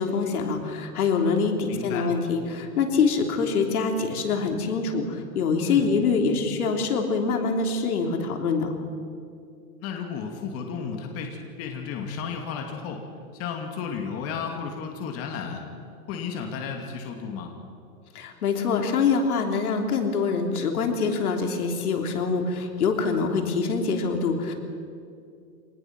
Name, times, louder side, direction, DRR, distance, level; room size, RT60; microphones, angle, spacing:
voice 1, 0.0-8.7 18.1-24.5, left 5 dB, 75° left, 3 dB, 3.3 m, -25 dB
voice 2, 1.7-2.1 5.7-5.9 9.8-13.0 13.3-15.6 16.1-17.5, left 6 dB, 30° left, 2 dB, 2.6 m, -33 dB
25.0 x 19.5 x 6.1 m, 2.4 s
hypercardioid pair, 145°, 44 cm